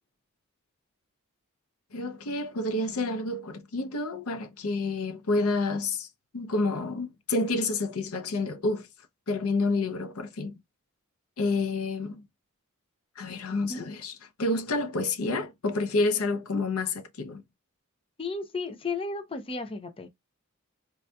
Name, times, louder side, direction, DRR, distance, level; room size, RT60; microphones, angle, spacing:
voice 1, 1.9-6.1 6.3-8.9 9.3-10.6 11.4-12.3 13.2-17.4, left 2 dB, 90° left, 0.6 m, -29 dB
voice 2, 13.5-13.9 18.2-20.1, left 3 dB, 25° left, 0.5 m, -34 dB
4.5 x 2.7 x 2.2 m
head